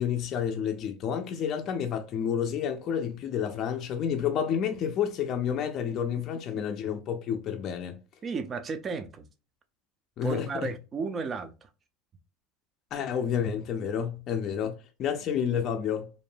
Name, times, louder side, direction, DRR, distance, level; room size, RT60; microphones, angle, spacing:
voice 1, 0.0-8.0 10.2-10.7 12.9-16.1, left 8 dB, 45° left, 0.4 m, -30 dB
voice 2, 8.2-9.3 10.2-11.7, right 4 dB, 30° right, 0.4 m, -33 dB
2.5 x 2.1 x 3.2 m
supercardioid pair, 105°, 0 cm